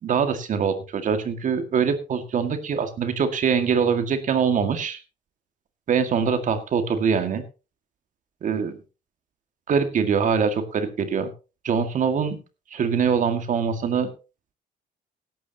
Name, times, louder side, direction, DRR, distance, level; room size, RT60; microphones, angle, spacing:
voice 1, 0.0-5.0 5.9-7.4 8.4-8.8 9.7-11.3 11.6-12.4 12.7-14.1, right 6 dB, 50° right, 8 dB, 2.0 m, -23 dB
16.0 x 12.5 x 2.9 m, 0.31 s
cardioid pair, 110°, 17 cm